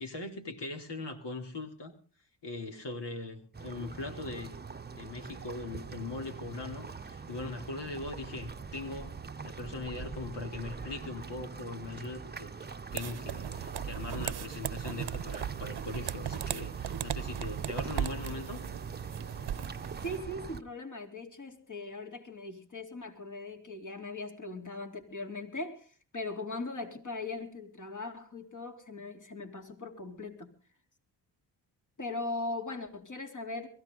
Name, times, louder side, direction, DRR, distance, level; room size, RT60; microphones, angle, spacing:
voice 1, 0.0-1.9 2.4-4.6 4.9-9.2 9.4-18.6, left 3 dB, 60° left, 3.9 m, -40 dB
sound 1, 3.5-20.6, right 5 dB, 20° right, 1.0 m, -43 dB
sound 2, 12.9-20.2, right 9 dB, 55° right, 1.0 m, -37 dB
voice 2, 20.0-30.5 32.0-33.7, left 2 dB, 40° left, 4.1 m, -39 dB
23.0 x 15.5 x 4.0 m
supercardioid pair, 55°, 46 cm